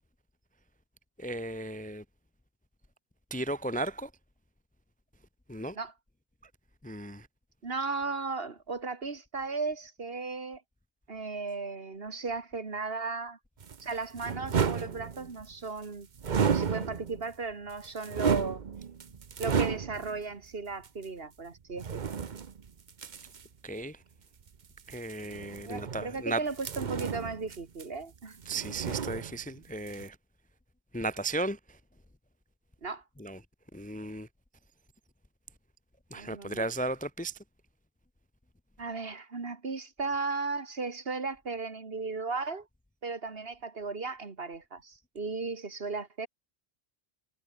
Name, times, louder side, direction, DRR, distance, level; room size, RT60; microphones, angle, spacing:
voice 1, 1.2-2.0 3.3-4.1 5.5-5.8 6.8-7.3 23.6-24.0 24.9-26.4 28.5-30.2 30.9-31.6 33.2-33.4 33.7-34.3 36.1-37.3, right 2 dB, 10° left, 0.5 m, -35 dB
voice 2, 7.6-10.6 11.1-13.4 13.8-16.1 16.5-18.6 19.4-22.1 25.6-28.4 32.8-33.0 36.1-36.7 38.8-42.7 43.0-46.3, right 4 dB, 65° right, 2.2 m, -36 dB
sound 1, 13.6-15.5 16.2-17.3 17.7-20.2 20.8-20.9 21.8-23.5 24.8-26.2 26.6-28.2 28.4-29.6 29.9-30.1, right 6 dB, 50° right, 1.0 m, -32 dB
omnidirectional pair, 1.1 m